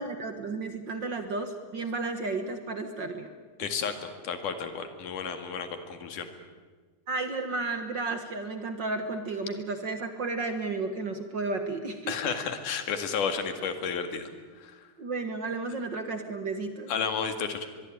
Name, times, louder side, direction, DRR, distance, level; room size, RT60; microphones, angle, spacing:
voice 1, 0.0-3.3 7.1-12.4 15.0-16.9, right 3 dB, 45° right, 7 dB, 1.6 m, -33 dB
voice 2, 3.6-6.3 12.1-14.3 14.6-14.8 16.9-17.7, left 6 dB, 90° left, 7 dB, 3.6 m, -32 dB
23.0 x 23.0 x 9.1 m, 1.4 s
omnidirectional pair, 3.5 m